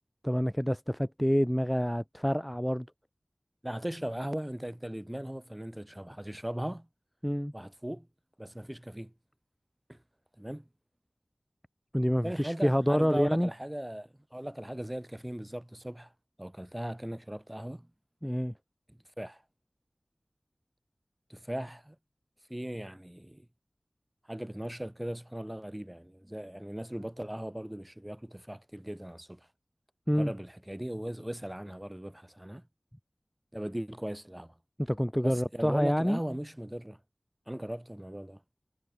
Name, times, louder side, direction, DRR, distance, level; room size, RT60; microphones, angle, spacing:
voice 1, 0.2-2.9 7.2-7.5 11.9-13.5 18.2-18.5 30.1-30.3 34.8-36.2, equal, 5° left, 1.3 m, -27 dB
voice 2, 3.6-6.9 7.5-8.1 8.4-9.1 9.9-10.0 10.4-10.7 12.2-16.1 16.4-17.9 18.9-19.4 21.3-22.0 22.5-23.5 24.3-29.4 30.1-32.6 33.5-34.5 35.2-37.0 37.5-38.4, right 1 dB, 15° right, 3.0 m, -38 dB
wide cardioid pair, 45°, 0 cm